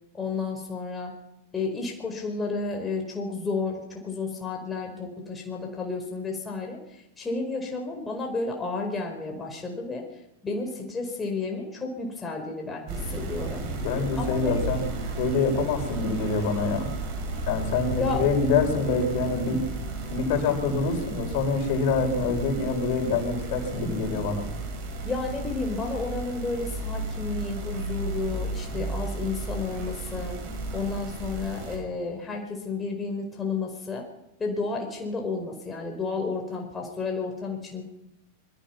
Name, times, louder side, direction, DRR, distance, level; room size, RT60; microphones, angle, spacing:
voice 1, 0.1-1.1 1.5-10.0 10.4-13.6 14.2-14.6 18.0-18.2 25.0-30.4 30.7-34.0 34.4-37.8, left 4 dB, 15° left, 1 dB, 4.7 m, -32 dB
sound 1, 12.9-31.8, right 2 dB, 40° right, 8.0 m, -34 dB
voice 2, 13.8-14.8 15.2-16.9 17.5-19.6 20.1-24.4, left 4 dB, 45° left, 5 dB, 5.9 m, -25 dB
26.0 x 23.0 x 6.0 m, 0.91 s
figure-of-eight pair, 90°, 0 cm